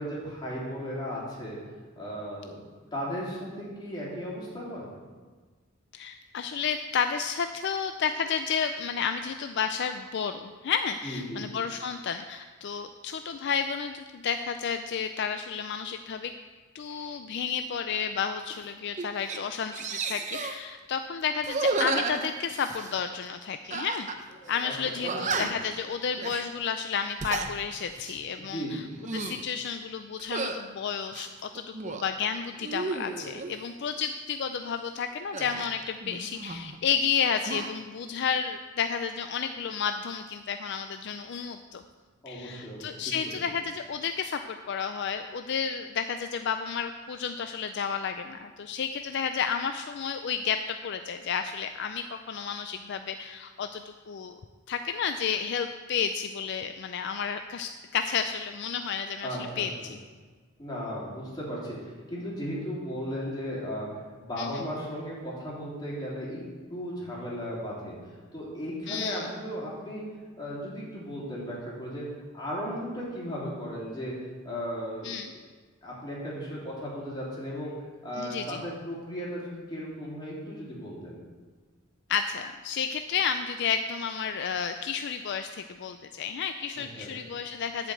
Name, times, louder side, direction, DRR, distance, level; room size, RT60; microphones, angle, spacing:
voice 1, 0.0-1.6 2.0-2.6 2.9-4.9 11.0-11.5 24.4-24.7 25.0-25.5 28.4-28.9 42.2-43.4 59.2-59.7 60.6-63.9 64.2-66.4 66.7-68.0 68.3-70.1 70.4-72.0 72.3-74.1 74.4-75.2 75.8-77.7 78.0-81.2 86.8-87.1, equal, 20° left, -6 dB, 3.1 m, -36 dB
voice 2, 5.9-16.3 16.7-24.1 24.5-28.9 29.1-41.8 42.3-50.6 50.8-54.4 54.7-60.0 64.4-64.6 68.9-69.3 75.0-75.3 78.2-78.6 82.1-87.9, left 7 dB, 55° left, 8 dB, 0.4 m, -31 dB
sound 1, 18.5-18.7 19.0-19.4 19.7-20.6 21.4-22.9 23.7-24.2 24.5-24.6 25.0-25.7 26.2-26.5 27.0-27.5 28.0-28.2 28.9-29.5 30.2-30.6 31.1-32.1 32.6-33.5 35.3-36.8 37.0-37.7, right 3 dB, 35° right, 0.6 m, -33 dB
10.5 x 5.2 x 7.8 m, 1.4 s
head